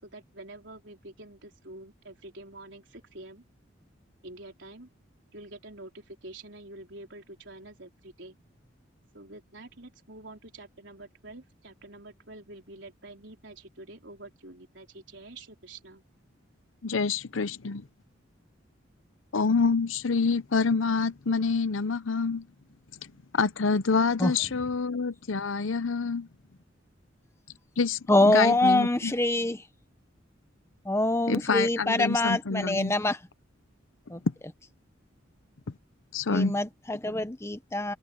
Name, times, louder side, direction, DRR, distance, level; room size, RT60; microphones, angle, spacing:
voice 1, 0.0-3.4 4.2-4.9 5.3-8.3 9.1-16.0, right 2 dB, 65° right, 4.6 m, -47 dB
voice 2, 16.8-17.8 19.3-22.5 23.3-26.3 27.8-29.1 31.3-32.9 36.1-36.6, left 4 dB, 85° left, 0.8 m, -27 dB
voice 3, 28.1-29.6 30.8-33.2 34.1-34.2 36.3-37.9, left 2 dB, 15° left, 1.0 m, -25 dB
head